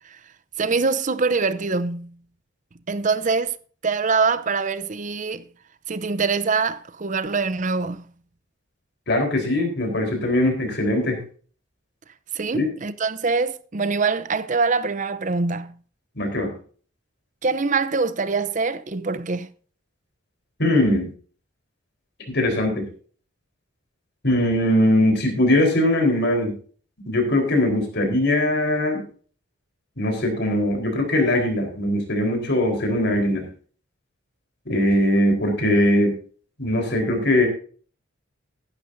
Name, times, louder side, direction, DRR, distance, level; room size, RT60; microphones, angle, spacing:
voice 1, 0.6-2.2 2.9-3.5 3.8-5.4 5.9-8.0 12.3-15.8 17.4-19.5, right 4 dB, 40° right, 0.7 m, -24 dB
voice 2, 9.1-11.2 12.5-12.7 16.2-16.5 20.6-21.1 22.3-22.9 24.2-26.5 27.1-29.0 30.0-33.5 34.7-36.1 36.6-37.5, left 1 dB, 55° left, 4.2 m, -21 dB
14.5 x 11.5 x 2.7 m
head